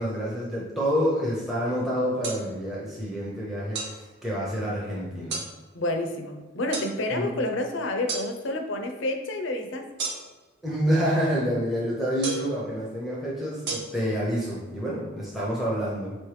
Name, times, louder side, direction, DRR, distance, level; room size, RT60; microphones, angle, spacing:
voice 1, 0.0-5.4 7.1-7.3 10.6-16.2, equal, ahead, -6 dB, 0.6 m, -28 dB
sound 1, 2.2-2.4 3.7-3.9 5.3-5.5 6.7-6.9 8.1-8.3 10.0-10.4 12.2-12.5 13.7-13.8, right 4 dB, 50° right, 0.7 m, -31 dB
voice 2, 5.7-9.9, left 1 dB, 60° left, 5 dB, 0.5 m, -29 dB
4.2 x 3.1 x 3.2 m, 1.3 s
head